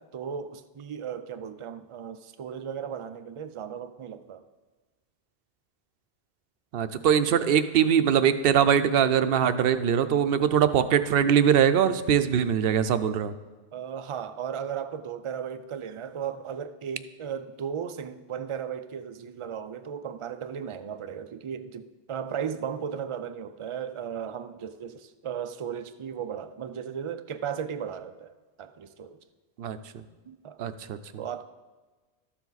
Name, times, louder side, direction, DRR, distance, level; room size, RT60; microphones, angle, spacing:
voice 1, 0.0-4.4 13.7-29.2 30.3-30.6 31.2-31.4, right 8 dB, 45° right, 11 dB, 0.4 m, -36 dB
voice 2, 6.7-13.3 29.6-29.8 30.6-31.0, right 8 dB, 65° right, 11 dB, 0.8 m, -22 dB
13.0 x 7.2 x 4.0 m, 1.3 s
omnidirectional pair, 1.1 m